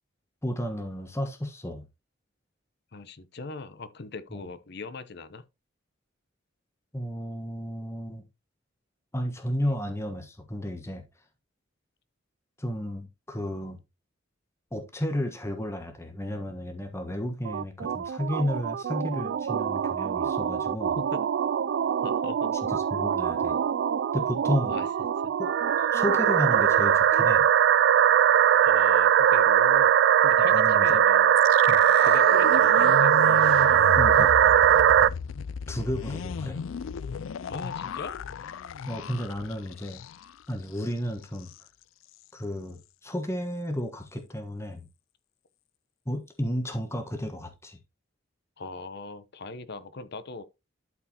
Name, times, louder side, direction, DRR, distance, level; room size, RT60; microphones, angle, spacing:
voice 1, 0.4-1.9 4.3-4.4 6.9-8.2 9.1-11.0 12.6-13.8 14.7-21.0 22.7-23.6 24.1-24.7 25.4-25.5 25.9-27.5 30.4-31.0 31.7-31.9 34.0-34.3 35.7-36.7 38.8-40.0 40.5-41.5 42.3-44.9 46.0-47.8, equal, 15° left, 1.3 m, -32 dB
voice 2, 2.9-5.4 21.0-21.2 22.0-22.6 24.7-24.9 25.2-25.3 28.6-29.9 30.2-31.4 32.0-33.2 37.5-38.2 48.6-50.4, left 3 dB, 60° left, 0.8 m, -40 dB
sound 1, 17.5-35.1, right 9 dB, 60° right, 0.3 m, -21 dB
sound 2, 31.4-40.4 40.7-40.9 41.2-41.6, left 6 dB, 85° left, 0.4 m, -35 dB
12.0 x 4.7 x 2.9 m
head